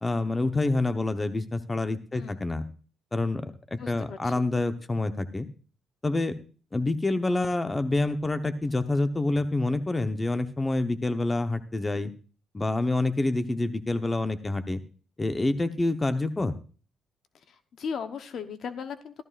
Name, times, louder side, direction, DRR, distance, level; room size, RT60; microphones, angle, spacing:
voice 1, 0.0-2.6 3.1-5.5 6.0-6.3 6.7-12.1 12.5-14.8 15.2-16.5, left 2 dB, 20° left, 9 dB, 1.0 m, -27 dB
voice 2, 2.1-2.4 3.8-4.4 17.5-19.2, left 6 dB, 65° left, 9 dB, 1.0 m, -37 dB
15.0 x 13.0 x 2.5 m, 0.37 s
cardioid pair, 90°, 0 cm